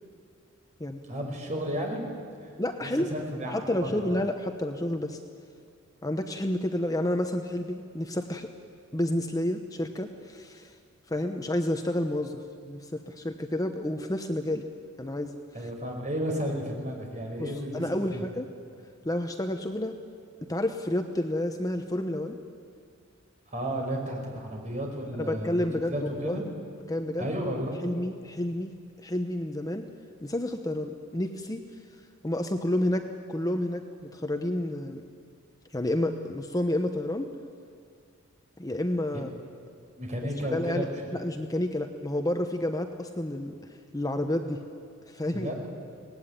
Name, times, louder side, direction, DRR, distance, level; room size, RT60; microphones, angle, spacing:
voice 1, 1.1-2.0 2.8-4.2 15.5-17.8 18.1-18.2 23.5-25.6 25.9-26.4 27.2-27.8 40.0-40.9 45.3-45.7, equal, 35° right, 1 dB, 5.3 m, -33 dB
voice 2, 2.6-3.1 3.5-5.2 6.0-8.5 8.9-10.7 11.1-14.6 15.0-15.4 17.4-18.5 19.0-19.9 20.5-22.4 25.2-25.9 26.2-26.4 26.9-27.3 27.8-28.7 29.0-29.9 30.2-31.6 32.2-35.0 35.7-37.3 38.6-39.3 40.5-43.6 43.9-44.6 45.1-45.5, left 1 dB, 15° left, 6 dB, 0.9 m, -30 dB
23.5 x 19.0 x 9.9 m, 2.2 s
head